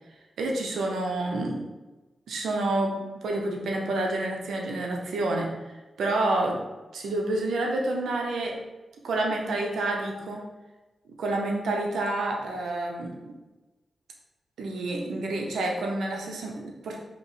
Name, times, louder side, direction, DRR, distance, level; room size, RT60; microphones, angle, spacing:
voice 1, 0.4-1.6 2.3-5.5 6.0-6.6 6.9-8.5 9.0-10.4 11.2-13.3 14.6-17.0, right 2 dB, 90° right, 0 dB, 0.8 m, -28 dB
5.1 x 3.0 x 3.2 m, 1.1 s
cardioid pair, 65°, 0 cm